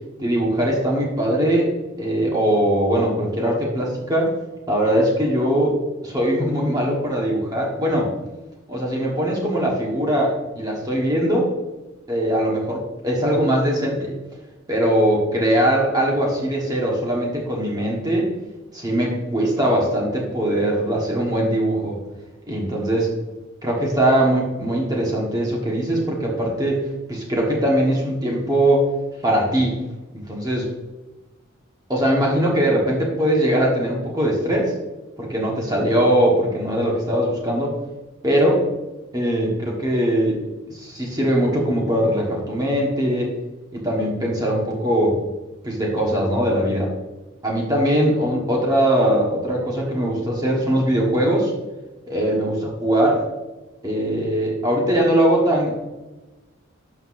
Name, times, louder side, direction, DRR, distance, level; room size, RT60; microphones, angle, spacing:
voice 1, 0.2-1.7 2.0-4.3 4.7-5.8 6.0-8.1 8.7-11.5 12.1-14.1 14.7-18.3 18.7-22.0 22.5-23.1 23.6-26.8 27.1-28.9 29.2-29.8 30.1-30.7 31.9-34.7 35.2-37.8 38.2-38.6 39.1-40.4 40.7-43.3 43.7-45.2 45.6-46.9 47.4-51.5 52.1-53.2 53.8-55.7, right 1 dB, 20° right, -3 dB, 1.3 m, -21 dB
12.0 x 5.7 x 2.6 m, 1.1 s
head